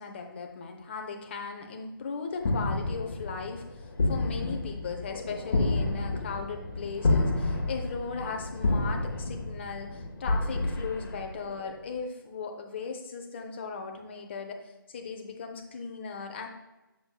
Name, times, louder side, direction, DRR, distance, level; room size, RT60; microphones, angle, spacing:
voice 1, 0.0-16.5, left 5 dB, 30° left, 4 dB, 0.7 m, -37 dB
sound 1, 2.4-11.7, left 2 dB, 50° left, 1.3 m, -30 dB
6.8 x 6.7 x 2.3 m, 1.0 s
figure-of-eight pair, 160°, 12 cm